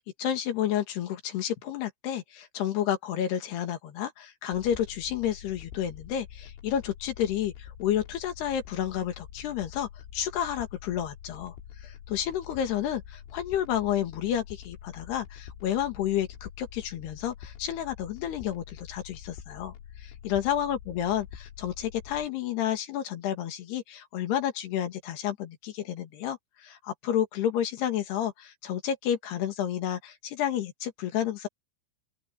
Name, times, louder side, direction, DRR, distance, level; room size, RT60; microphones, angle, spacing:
voice 1, 0.2-11.5 11.8-19.7 20.0-31.5, left 10 dB, 60° left, 3.7 m, -30 dB
sound 1, 4.5-22.3, left 9 dB, 80° left, 4.7 m, -46 dB
open air
omnidirectional pair, 5.6 m